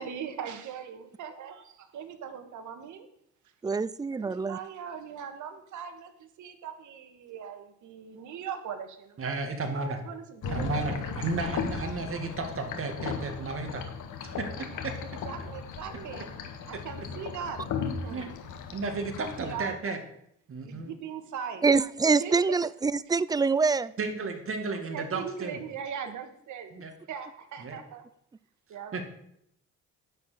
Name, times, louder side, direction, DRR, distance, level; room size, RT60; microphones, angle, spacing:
voice 1, 0.0-3.1 4.1-9.2 10.0-11.5 13.1-13.2 15.0-16.2 16.7-17.6 18.0-18.3 19.4-19.8 20.6-21.6 22.0-22.4 24.8-26.7 27.1-28.0 28.7-29.0, right 7 dB, 75° right, 7 dB, 1.5 m, -40 dB
voice 2, 3.6-4.6 21.6-23.9, right 4 dB, 15° right, 18 dB, 0.4 m, -25 dB
voice 3, 9.2-10.0 10.5-13.8 14.2-14.9 18.1-18.3 18.7-20.0 20.5-20.9 24.0-25.6 26.7-26.9 27.6-27.8 28.9-29.0, right 3 dB, 45° right, 5 dB, 2.2 m, -33 dB
sound 1, 10.4-19.6, left 6 dB, 80° left, 1.4 m, -36 dB
10.5 x 4.5 x 7.9 m, 0.73 s
cardioid pair, 90°, 30 cm